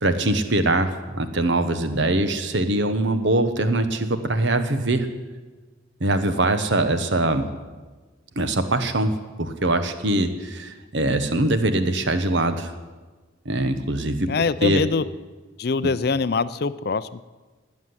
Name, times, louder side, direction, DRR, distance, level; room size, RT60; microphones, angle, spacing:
voice 1, 0.0-5.1 6.0-7.5 8.4-9.1 9.4-12.7 13.4-14.3 14.6-14.8, right 2 dB, 70° right, 9 dB, 1.2 m, -22 dB
voice 2, 14.3-15.0 15.6-17.2, left 4 dB, 55° left, 14 dB, 0.5 m, -23 dB
19.5 x 7.4 x 9.7 m, 1.3 s
head